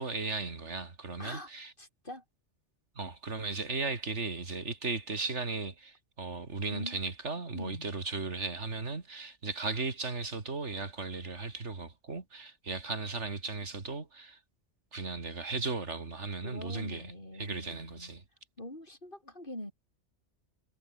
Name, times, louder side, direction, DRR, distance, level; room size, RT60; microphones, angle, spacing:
voice 1, 0.0-1.7 3.0-14.4 14.9-17.0 17.4-18.2, right 3 dB, 80° right, 2.9 m, -36 dB
voice 2, 1.2-1.5 1.8-2.2 6.7-7.0 7.5-7.9 16.4-18.1 18.6-19.7, left 1 dB, 45° left, 7.3 m, -43 dB
omnidirectional pair, 1.2 m